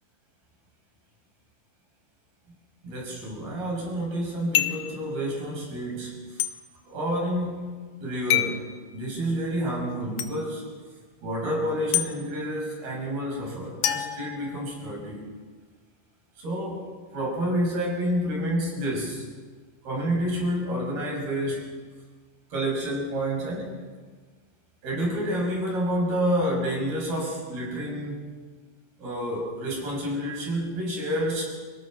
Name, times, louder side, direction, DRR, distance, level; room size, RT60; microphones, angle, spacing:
voice 1, 2.8-6.4 6.9-7.7 8.0-10.7 11.2-15.3 16.4-19.2 19.8-21.7 22.5-23.8 24.8-28.3 29.0-31.4, equal, 90° right, 0 dB, 8.3 m, -29 dB
sound 1, 4.5-4.9 6.4-6.5 8.3-8.6 10.2-10.3 11.9-12.1 13.8-14.9, left 12 dB, 70° left, 2.6 m, -26 dB
29.0 x 16.5 x 6.5 m, 1.5 s
omnidirectional pair, 4.2 m